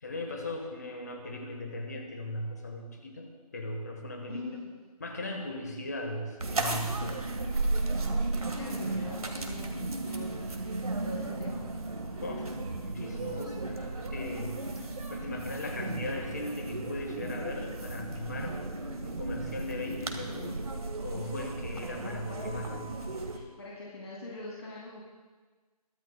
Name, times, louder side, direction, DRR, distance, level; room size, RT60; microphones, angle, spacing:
voice 1, 0.0-4.4 5.0-7.3 8.3-8.6 12.2-12.5 12.8-18.6 19.0-20.5 21.0-23.0, left 2 dB, 25° left, 2 dB, 1.4 m, -38 dB
voice 2, 4.3-4.8 7.8-11.6 13.2-13.5 20.3-20.6 23.3-25.0, left 2 dB, 45° left, -6 dB, 2.7 m, -44 dB
sound 1, 6.4-23.4, right 2 dB, 65° right, 1.8 m, -35 dB
22.5 x 13.0 x 2.3 m, 1.4 s
figure-of-eight pair, 175°, 20 cm